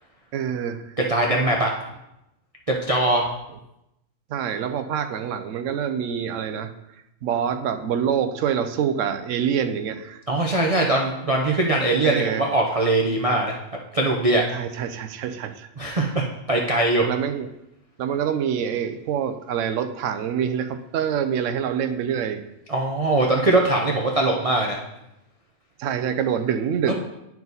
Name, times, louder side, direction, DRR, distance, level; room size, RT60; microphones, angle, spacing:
voice 1, 0.3-1.0 4.3-10.2 12.0-12.4 14.5-15.7 17.1-17.5 18.0-22.4 25.8-26.9, right 8 dB, 65° right, 8 dB, 0.9 m, -26 dB
voice 2, 1.0-1.7 2.7-3.3 10.3-13.5 13.9-14.5 15.8-17.1 22.7-24.8 26.9-27.0, right 2 dB, 35° right, -1 dB, 0.5 m, -21 dB
10.5 x 4.7 x 4.0 m, 0.88 s
omnidirectional pair, 1.5 m